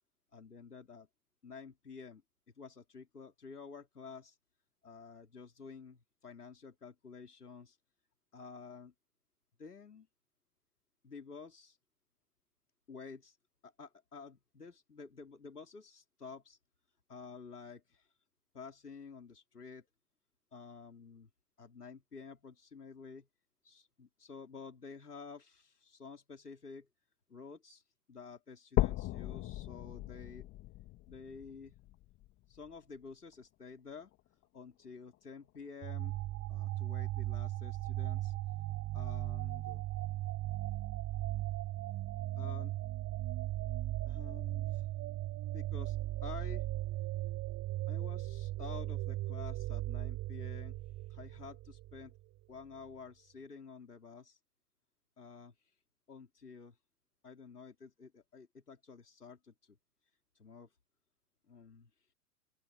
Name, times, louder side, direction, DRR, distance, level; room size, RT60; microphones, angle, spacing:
voice 1, 0.3-1.1 1.4-2.2 2.6-4.4 4.8-7.8 8.3-8.9 9.6-10.1 11.0-11.8 12.9-13.4 13.6-16.6 17.1-18.1 18.5-19.9 20.5-21.3 21.6-23.3 23.6-26.9 27.3-27.8 28.1-30.5 31.1-31.7 32.5-34.1 34.5-36.2 36.5-38.3 38.9-39.9 42.4-42.7 44.1-44.9 45.5-46.6 47.9-50.8 51.1-52.1 52.5-54.4 55.2-55.5 56.1-56.8 57.2-59.8 60.3-60.7 61.5-61.9, left 5 dB, 90° left, 3.2 m, -50 dB
sound 1, 28.8-32.8 33.3-33.4 34.0-34.1 34.4-34.5 35.4-35.5, left 16 dB, 30° left, 1.7 m, -37 dB
sound 2, 35.8-52.2, right 15 dB, 35° right, 4.7 m, -37 dB
open air
figure-of-eight pair, 100°, 45 cm